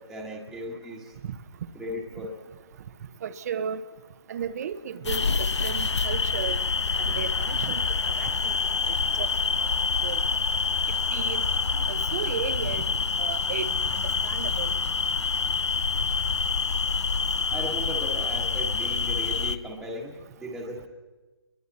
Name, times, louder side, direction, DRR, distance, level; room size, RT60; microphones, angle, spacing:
voice 1, 0.1-1.1 1.7-2.3 17.5-20.9, equal, ahead, -3 dB, 1.7 m, -37 dB
voice 2, 3.2-3.8 4.3-6.6 7.0-8.6 9.2-9.3 10.0-10.2 11.1-11.4 11.9-12.9 13.2-13.7 14.2-14.7, right 8 dB, 35° right, 12 dB, 1.0 m, -34 dB
sound 1, 5.1-19.6, left 5 dB, 80° left, 0.9 m, -26 dB
30.0 x 22.5 x 4.2 m, 1.2 s
hypercardioid pair, 160°, 15 cm